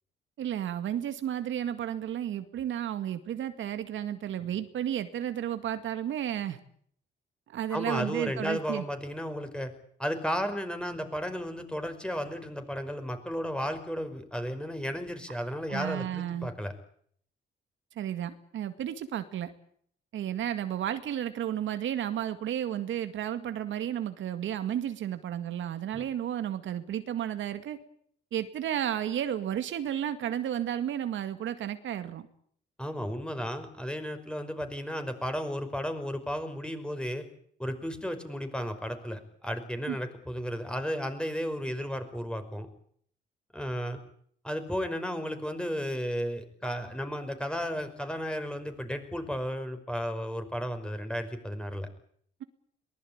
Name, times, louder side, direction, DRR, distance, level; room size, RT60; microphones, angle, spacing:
voice 1, 0.4-6.6 7.5-8.8 15.7-16.5 18.0-19.5 20.1-27.8 28.3-32.3 39.9-40.0, right 10 dB, 75° right, 9 dB, 2.1 m, -32 dB
voice 2, 7.7-9.7 10.0-16.7 25.9-26.1 32.8-37.2 37.6-42.7 43.5-44.0 44.4-51.9, equal, 5° left, 8 dB, 5.3 m, -34 dB
23.0 x 20.0 x 8.8 m, 0.62 s
cardioid pair, 90°, 20 cm